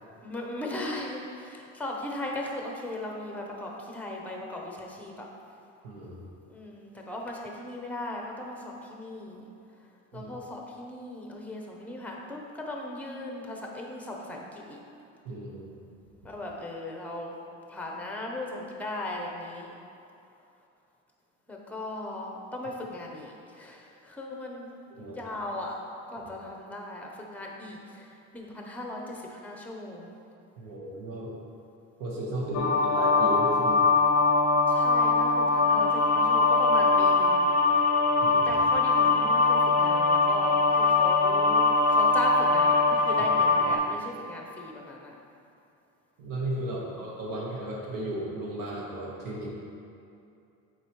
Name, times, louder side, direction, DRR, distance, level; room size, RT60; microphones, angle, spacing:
voice 1, 0.2-5.3 6.5-9.5 10.1-14.8 16.2-17.3 17.7-19.7 21.5-24.7 25.0-25.8 26.1-30.1 32.6-33.0 34.7-37.5 38.4-45.1, left 1 dB, 5° left, 0 dB, 0.7 m, -38 dB
voice 2, 5.8-6.2 10.1-10.3 15.2-15.7 25.0-25.2 26.2-26.3 30.6-31.3 32.0-33.8 38.2-38.5 43.6-43.7 46.2-49.5, right 1 dB, 70° right, -4 dB, 1.4 m, -35 dB
sound 1, 32.5-43.8, left 3 dB, 50° left, 0.6 m, -22 dB
7.7 x 4.6 x 3.1 m, 2.6 s
cardioid pair, 130°, 33 cm